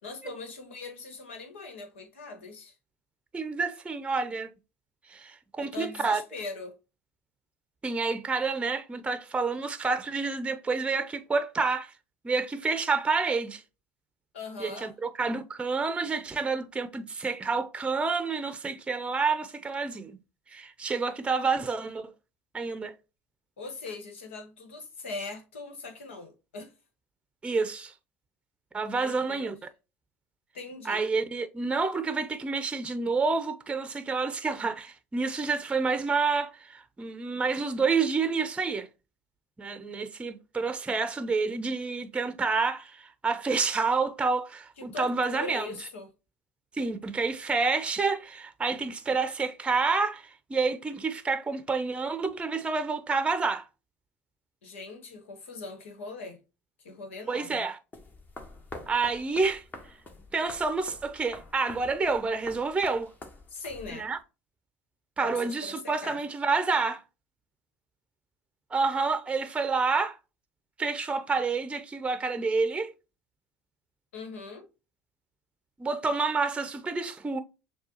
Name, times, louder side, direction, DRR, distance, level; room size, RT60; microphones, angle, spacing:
voice 1, 0.0-2.7 5.6-6.8 14.3-14.9 23.6-26.7 28.9-29.5 30.5-31.1 44.8-46.1 54.6-56.4 56.8-57.6 63.5-64.1 65.2-66.2 74.1-74.7, left 3 dB, 85° left, 1.3 m, -41 dB
voice 2, 3.3-4.5 5.1-6.2 7.8-11.9 12.2-13.6 14.6-20.2 20.5-22.1 22.5-23.0 27.4-27.9 28.7-29.6 30.8-38.9 39.6-45.7 46.7-53.7 57.3-57.8 58.9-59.6 60.3-63.1 63.9-64.2 65.2-67.0 68.7-70.2 70.8-72.9 75.8-77.4, right 4 dB, 20° right, 0.6 m, -29 dB
sound 1, 57.9-64.2, left 2 dB, 30° left, 1.3 m, -46 dB
6.6 x 2.3 x 2.8 m
hypercardioid pair, 70°, 6 cm